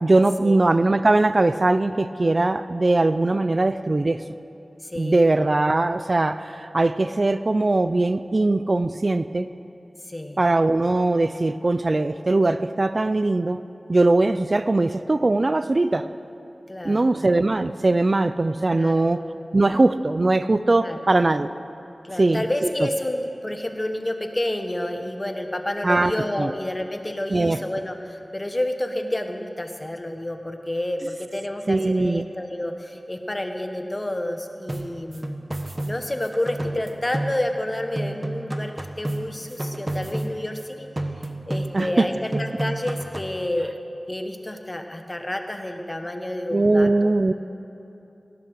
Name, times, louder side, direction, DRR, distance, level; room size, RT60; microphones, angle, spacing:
voice 1, 0.0-4.2 5.0-9.5 10.4-13.6 13.9-16.1 16.8-19.2 19.5-21.5 22.2-22.4 25.8-26.1 26.4-26.5 27.3-27.6 31.7-32.3 41.7-42.1 46.5-47.3, right 2 dB, 50° right, 12 dB, 0.4 m, -20 dB
voice 2, 4.8-5.4 10.1-10.4 16.7-17.2 18.7-19.1 20.8-21.0 22.0-40.9 41.2-43.7 44.1-47.1, left 1 dB, 25° left, 5 dB, 1.3 m, -29 dB
sound 1, 34.7-37.7 38.0-40.7 41.0-42.0 42.3-43.4, right 1 dB, 30° right, 1.1 m, -31 dB
17.0 x 11.5 x 6.4 m, 2.8 s
wide cardioid pair, 55°, 0 cm